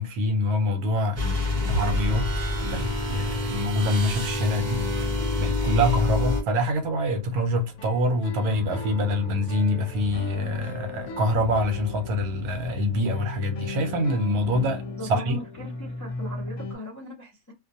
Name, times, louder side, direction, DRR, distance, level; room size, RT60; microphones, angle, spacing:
voice 1, 0.0-2.3 2.6-14.8 15.1-15.4, left 1 dB, 75° right, 1.2 m, -25 dB
sound 1, 1.1-16.8, left 3 dB, 70° left, 0.9 m, -38 dB
sound 2, 1.2-6.4, left 2 dB, 40° right, 0.7 m, -27 dB
sound 3, 1.7-6.2, right 2 dB, 60° right, 1.0 m, -35 dB
voice 2, 14.8-17.5, equal, 25° left, 0.4 m, -39 dB
2.5 x 2.2 x 2.7 m
omnidirectional pair, 1.6 m